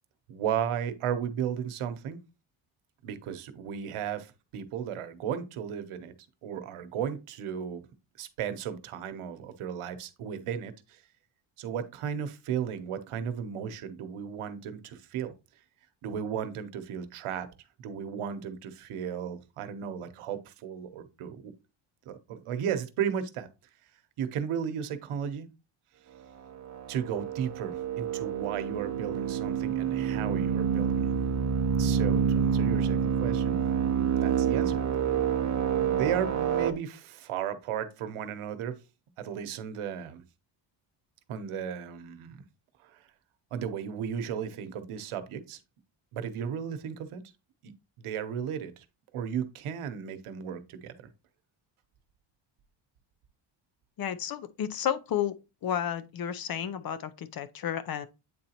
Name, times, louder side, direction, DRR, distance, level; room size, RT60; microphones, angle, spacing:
voice 1, 0.3-2.2 3.0-6.1 6.4-7.8 8.2-11.0 11.6-15.3 16.0-17.5 17.8-21.5 22.1-23.5 24.2-25.5 26.9-31.1 31.8-33.6 34.2-34.8 35.8-38.8 39.2-40.2 41.3-42.4 42.8-43.0 43.5-45.6 46.1-47.2 47.6-47.7 48.0-48.8 49.1-50.9, right 8 dB, 80° right, 1.0 m, -35 dB
sound 1, 26.7-36.7, right 7 dB, 35° right, 0.6 m, -28 dB
voice 2, 54.0-55.3 55.6-58.1, left 9 dB, 45° left, 0.6 m, -32 dB
8.5 x 3.9 x 2.9 m
cardioid pair, 135°, 50 cm